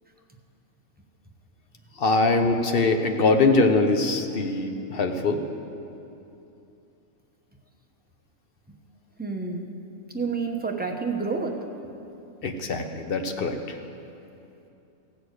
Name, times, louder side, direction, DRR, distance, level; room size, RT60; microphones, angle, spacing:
voice 1, 2.0-5.4 12.4-13.8, left 3 dB, 50° left, 5 dB, 0.9 m, -22 dB
voice 2, 9.2-9.7 10.1-11.6, right 4 dB, 10° right, 0 dB, 0.7 m, -29 dB
15.5 x 6.6 x 8.1 m, 2.8 s
omnidirectional pair, 1.5 m